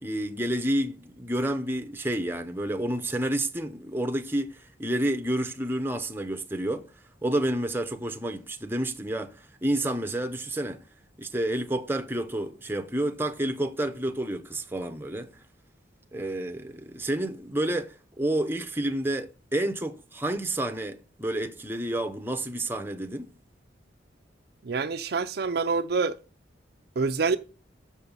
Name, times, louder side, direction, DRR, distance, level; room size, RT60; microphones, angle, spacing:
voice 1, 0.0-6.9 7.2-10.8 11.2-15.3 16.1-23.3, right 1 dB, 10° right, 0.7 m, -29 dB
voice 2, 24.6-26.1 27.0-27.4, right 4 dB, 55° right, 0.5 m, -26 dB
6.8 x 5.3 x 7.2 m
head